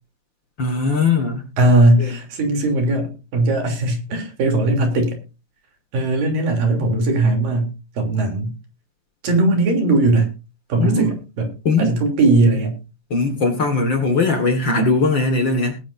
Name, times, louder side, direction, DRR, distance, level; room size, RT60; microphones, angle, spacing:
voice 1, 0.6-1.5 2.0-2.1 10.8-11.2 11.7-11.9 13.1-15.8, left 3 dB, 45° left, 1.9 m, -19 dB
voice 2, 1.6-5.2 5.9-8.6 9.2-10.3 10.7-11.5 11.8-12.8, right 2 dB, 85° right, 4.8 m, -18 dB
19.5 x 10.5 x 2.6 m
omnidirectional pair, 3.8 m